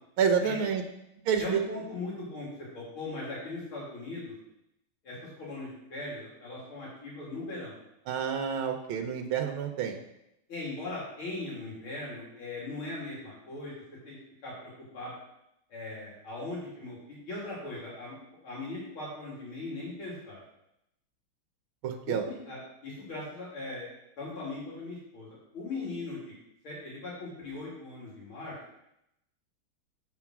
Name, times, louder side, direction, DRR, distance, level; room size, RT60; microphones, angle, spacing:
voice 1, 0.2-0.8 1.3-1.6 8.1-10.0 21.8-22.2, right 7 dB, 80° right, 3 dB, 1.6 m, -28 dB
voice 2, 1.4-2.5 2.7-4.3 5.0-7.8 10.5-13.7 14.0-14.2 14.4-15.1 15.7-18.2 18.4-20.4 22.1-23.9 24.2-26.3 26.6-28.5, left 2 dB, 85° left, -6 dB, 3.4 m, -39 dB
7.2 x 5.3 x 6.0 m, 0.82 s
omnidirectional pair, 2.3 m